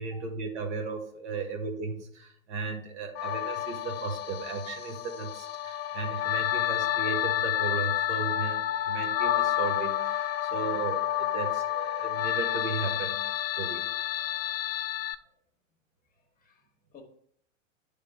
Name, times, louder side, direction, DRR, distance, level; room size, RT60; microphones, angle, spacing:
voice 1, 0.0-13.3 13.6-13.9, right 4 dB, 55° right, 3 dB, 1.2 m, -35 dB
sound 1, 3.2-15.2, left 12 dB, 50° left, 0.4 m, -30 dB
voice 2, 16.1-17.0, left 7 dB, 20° left, 3 dB, 1.3 m, -57 dB
9.5 x 3.4 x 3.4 m, 0.64 s
figure-of-eight pair, 90°, 40 cm